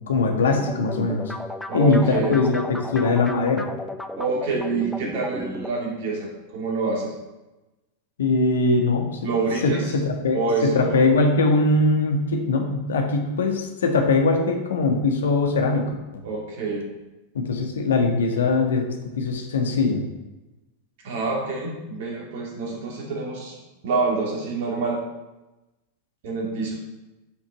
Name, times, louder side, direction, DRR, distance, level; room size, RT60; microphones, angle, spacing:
voice 1, 0.1-1.3 1.7-2.6 2.9-3.6 8.2-9.2 9.6-15.8 16.1-16.2 17.3-18.8 19.2-20.0, left 3 dB, 65° left, 3 dB, 1.6 m, -21 dB
sound 1, 0.6-5.7, left 1 dB, 5° left, 0.6 m, -34 dB
voice 2, 1.7-2.3 4.2-7.1 9.2-9.9 10.3-11.0 16.2-16.8 21.0-25.0 26.2-26.8, right 3 dB, 50° right, -1 dB, 2.7 m, -27 dB
11.0 x 6.1 x 4.0 m, 1.1 s
figure-of-eight pair, 90°, 0 cm